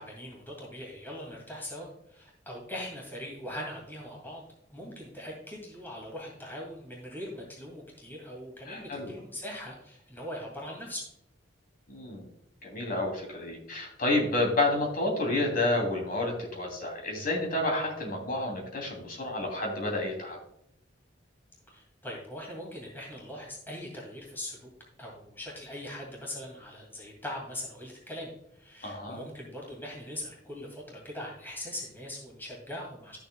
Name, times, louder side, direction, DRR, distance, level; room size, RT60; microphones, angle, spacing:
voice 1, 0.0-4.4 4.7-11.0 21.7-24.7 25.0-33.2, left 1 dB, 10° left, -2 dB, 2.3 m, -41 dB
voice 2, 8.7-9.1 11.9-12.3 12.6-20.4 28.8-29.2, left 2 dB, 50° left, 1 dB, 2.9 m, -30 dB
12.5 x 6.7 x 2.3 m, 0.76 s
head